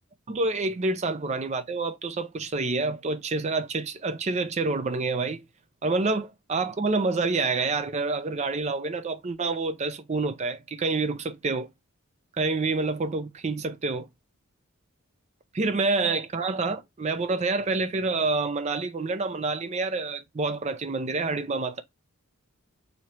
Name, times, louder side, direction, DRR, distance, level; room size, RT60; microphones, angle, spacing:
voice 1, 0.3-5.4 5.8-11.7 12.4-14.1 15.5-21.8, right 3 dB, 30° right, 0.4 m, -27 dB
3.0 x 2.8 x 4.3 m
head